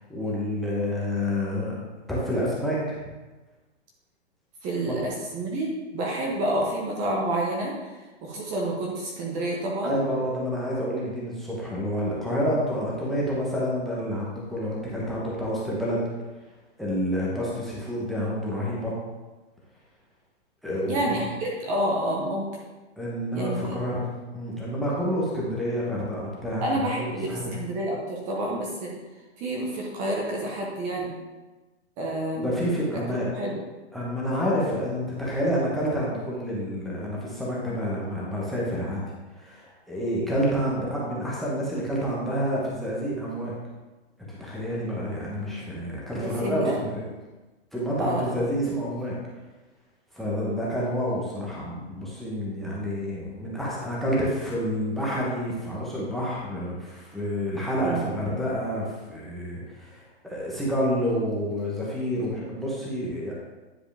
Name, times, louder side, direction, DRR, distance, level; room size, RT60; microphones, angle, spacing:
voice 1, 0.0-1.7 2.1-3.0 4.9-5.0 9.8-16.0 16.8-19.0 20.6-21.2 23.0-24.1 24.3-27.0 27.3-27.5 32.4-33.3 33.9-39.0 39.4-43.5 44.3-47.0 47.7-49.2 50.1-63.3, equal, ahead, -6 dB, 1.0 m, -28 dB
voice 2, 4.6-7.9 8.2-10.0 20.9-22.6 23.3-23.8 26.6-28.9 29.4-31.1 32.0-32.5 33.3-33.6 46.2-46.8 48.0-48.4 57.8-58.1, right 1 dB, 20° right, -2 dB, 1.0 m, -29 dB
10.0 x 4.8 x 3.4 m, 1.2 s
hypercardioid pair, 150°, 35 cm